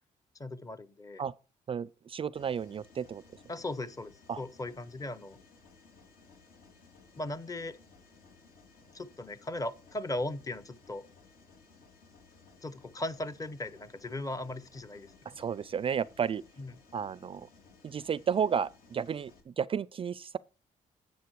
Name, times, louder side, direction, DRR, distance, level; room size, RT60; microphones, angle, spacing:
voice 1, 0.4-1.2 3.5-5.4 7.2-7.8 8.9-11.1 12.6-15.1 16.6-16.7, left 1 dB, 25° left, 0.9 m, -38 dB
voice 2, 1.7-3.2 4.3-4.4 15.3-16.4 16.9-17.5 17.8-20.4, right 7 dB, 35° right, 0.4 m, -32 dB
Mechanisms, 2.3-19.4, left 4 dB, 70° left, 3.3 m, -59 dB
10.5 x 7.5 x 4.7 m
cardioid pair, 100°, 15 cm